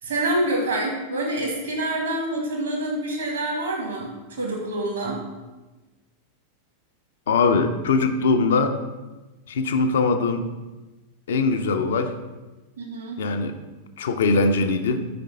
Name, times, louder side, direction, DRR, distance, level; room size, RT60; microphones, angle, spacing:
voice 1, 0.0-5.2 12.8-13.2, right 1 dB, 65° right, -1 dB, 1.7 m, -27 dB
voice 2, 7.3-8.8 9.5-10.5 11.3-12.1 13.2-13.6 14.0-15.1, left 3 dB, 60° left, 7 dB, 0.5 m, -21 dB
5.2 x 4.2 x 5.3 m, 1.1 s
figure-of-eight pair, 90°, 0 cm